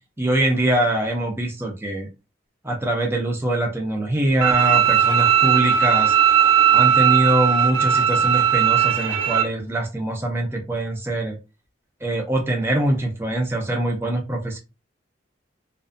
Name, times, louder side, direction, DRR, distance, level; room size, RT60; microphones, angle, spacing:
voice 1, 0.2-2.1 2.6-6.1 6.7-11.3 12.0-14.6, right 1 dB, 10° right, 1 dB, 0.5 m, -23 dB
Bowed string instrument, 4.4-9.4, right 8 dB, 80° right, 0.6 m, -17 dB
2.5 x 2.2 x 2.5 m, 0.29 s
head